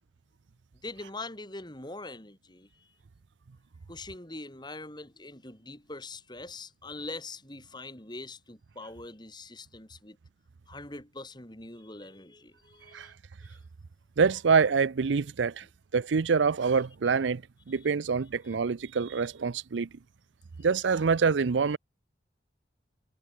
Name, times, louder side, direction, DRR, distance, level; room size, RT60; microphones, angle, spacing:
voice 1, 0.8-2.7 3.9-10.2 10.7-13.1 13.4-13.6, left 2 dB, 25° left, 4.4 m, -43 dB
voice 2, 14.2-15.7 15.9-19.9 20.6-21.8, right 5 dB, 85° right, 0.5 m, -26 dB
head